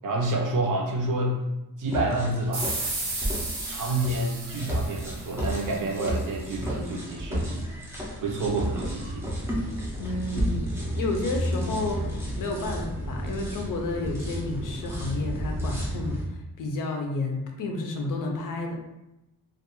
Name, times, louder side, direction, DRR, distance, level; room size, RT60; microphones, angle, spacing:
voice 1, 0.0-1.4 1.8-2.7 3.7-7.7 8.2-9.3, right 2 dB, 55° right, -1 dB, 0.6 m, -28 dB
sound 1, 1.9-16.3, equal, 5° right, 0.4 m, -32 dB
sound 2, 2.5-5.8, right 2 dB, 85° right, 1.2 m, -34 dB
voice 2, 10.0-18.8, left 2 dB, 55° left, 2 dB, 0.5 m, -31 dB
2.3 x 2.2 x 2.9 m, 0.91 s
wide cardioid pair, 160°, 39 cm